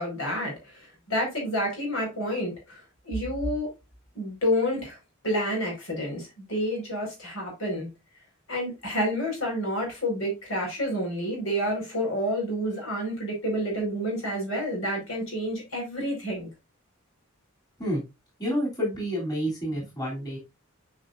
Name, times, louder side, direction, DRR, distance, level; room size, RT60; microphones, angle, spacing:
voice 1, 0.0-2.8 3.0-3.7 4.1-5.0 5.2-7.9 8.5-16.5, equal, 75° left, 5.0 m, -29 dB
voice 2, 18.4-20.4, equal, 20° left, 3.1 m, -29 dB
9.8 x 5.4 x 2.6 m
head